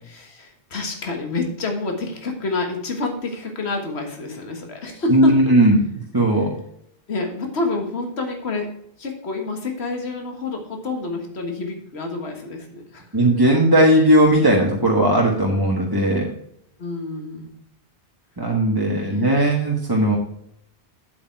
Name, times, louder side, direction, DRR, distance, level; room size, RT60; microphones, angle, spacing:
voice 1, 0.0-5.4 6.4-6.5 7.1-8.7 9.0-13.1 16.8-17.5 18.9-19.4, left 3 dB, 70° left, 3 dB, 1.8 m, -28 dB
voice 2, 5.1-5.8 6.1-6.5 13.1-16.3 18.4-20.2, right 1 dB, 20° right, -2 dB, 1.3 m, -17 dB
8.3 x 7.9 x 4.5 m, 0.72 s
omnidirectional pair, 1.1 m